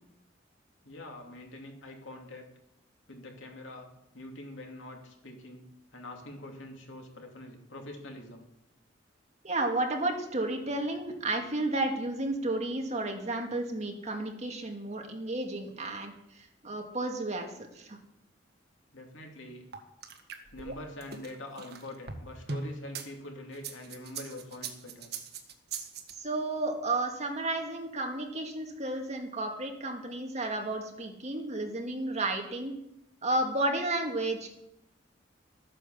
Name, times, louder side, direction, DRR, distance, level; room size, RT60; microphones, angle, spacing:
voice 1, 0.8-2.5 3.1-5.6 5.9-8.5 18.9-19.6 20.5-25.1, left 1 dB, 85° left, 2 dB, 2.8 m, -44 dB
voice 2, 9.4-16.1 16.6-17.5 17.8-18.0 26.2-32.7 33.2-34.5, right 2 dB, 35° right, 3 dB, 2.1 m, -32 dB
sound 1, 19.7-23.1 23.5-26.1, right 4 dB, 60° right, 1.7 m, -39 dB
13.5 x 9.1 x 7.1 m, 0.82 s
head